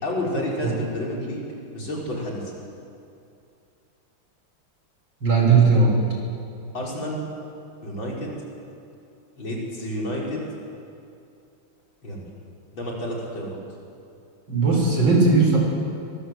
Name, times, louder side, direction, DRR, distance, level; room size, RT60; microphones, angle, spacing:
voice 1, 0.0-2.4 6.7-7.3 7.8-8.4 9.4-10.5 12.0-12.3 12.7-13.6, left 1 dB, 85° left, -3 dB, 6.0 m, -30 dB
voice 2, 5.2-5.9 14.5-15.6, right 4 dB, 80° right, -1 dB, 6.4 m, -17 dB
24.0 x 23.0 x 7.9 m, 2.6 s
omnidirectional pair, 2.1 m